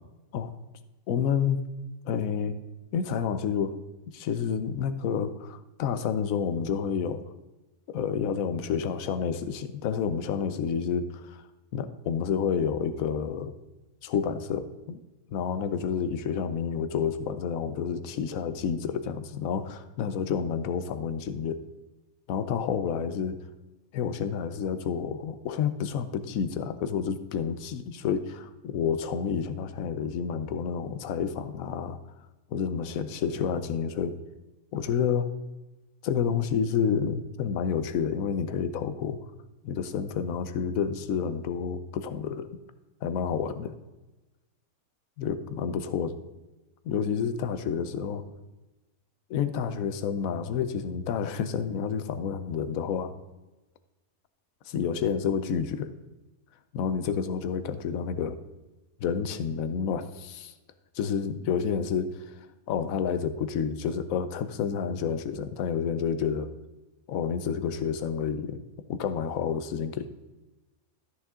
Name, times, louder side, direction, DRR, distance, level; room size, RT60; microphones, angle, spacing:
voice 1, 1.1-1.6 2.0-2.6 2.9-3.8 4.1-7.2 7.9-11.4 11.7-13.5 14.0-15.0 15.3-21.6 22.3-23.4 23.9-32.0 32.5-34.1 34.7-35.3 36.0-39.2 39.6-42.5 43.0-43.7 45.2-46.2 46.8-48.2 49.3-53.1 54.7-55.9 56.7-58.4 59.0-60.5 60.9-62.2 62.7-66.5 67.1-68.6 68.9-70.1, left 7 dB, 70° left, 11 dB, 1.1 m, -29 dB
13.5 x 6.4 x 3.7 m, 1.1 s
omnidirectional pair, 1.5 m